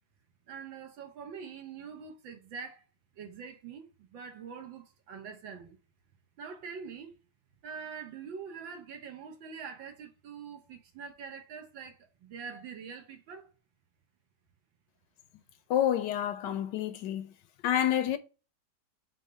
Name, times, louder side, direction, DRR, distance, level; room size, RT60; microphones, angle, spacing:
voice 1, 0.5-2.8 3.1-5.8 6.4-7.2 7.6-13.5, right 6 dB, 80° right, 1.9 m, -44 dB
voice 2, 15.7-17.3 17.6-18.2, left 11 dB, 75° left, 1.2 m, -28 dB
4.6 x 3.9 x 5.2 m
omnidirectional pair, 2.1 m